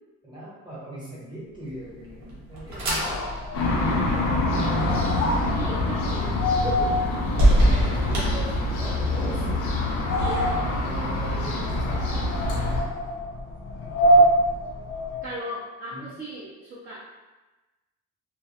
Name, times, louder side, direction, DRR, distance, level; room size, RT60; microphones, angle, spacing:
voice 1, 0.2-3.2 3.7-5.1 7.8-8.5 8.8-9.6 10.3-12.6 15.9-16.1, right 1 dB, 15° right, -8 dB, 1.0 m, -39 dB
sound 1, 1.8-9.1, equal, 85° right, 0.9 m, -27 dB
sound 2, 2.8-15.4, equal, 45° left, 0.4 m, -27 dB
sound 3, 3.5-12.8, left 2 dB, 85° left, 0.6 m, -26 dB
voice 2, 5.5-6.4 6.6-7.1 10.1-10.5 15.2-17.0, right 1 dB, 30° right, -9 dB, 0.6 m, -36 dB
2.3 x 2.0 x 2.8 m, 1.1 s
cardioid pair, 125°, 29 cm